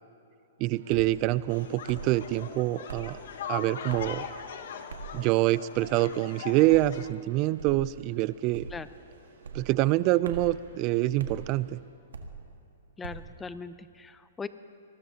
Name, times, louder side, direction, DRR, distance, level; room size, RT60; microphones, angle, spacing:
voice 1, 0.6-3.2 3.5-4.3 5.1-8.7 9.5-11.8, right 17 dB, 35° right, 19 dB, 0.4 m, -26 dB
sound 1, 0.7-11.8, right 3 dB, 70° right, 4.1 m, -57 dB
sound 2, 0.9-1.1 1.9-2.1 2.9-3.1 3.9-4.2 4.9-5.2 5.7-6.0 6.6-6.9 7.6-7.9 8.5-8.9 9.4-9.7 10.2-10.6 11.2-11.4 12.1-12.4 13.0-13.3, right 4 dB, 90° right, 1.6 m, -40 dB
sound 3, 1.5-7.1, left 7 dB, 65° left, 1.1 m, -40 dB
voice 2, 13.0-14.5, left 4 dB, 10° left, 13 dB, 0.6 m, -40 dB
24.5 x 20.0 x 2.9 m, 2.9 s
hypercardioid pair, 140°, 0 cm